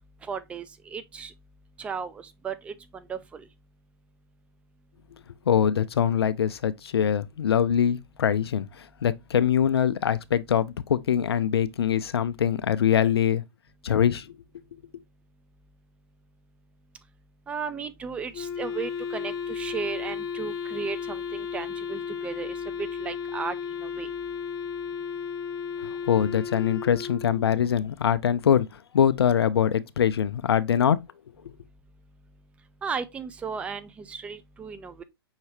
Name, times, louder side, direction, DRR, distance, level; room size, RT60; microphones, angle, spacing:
voice 1, 0.2-1.3 1.8-3.4 17.5-24.1 32.8-35.0, right 5 dB, 10° right, 0.3 m, -35 dB
voice 2, 5.5-13.4 13.8-14.3 14.5-14.6 25.8-31.0, left 8 dB, 70° left, 0.4 m, -23 dB
Wind instrument woodwind instrument, 18.3-27.6, left 6 dB, 20° left, 0.7 m, -34 dB
5.6 x 2.7 x 3.1 m
figure-of-eight pair, 120°, 14 cm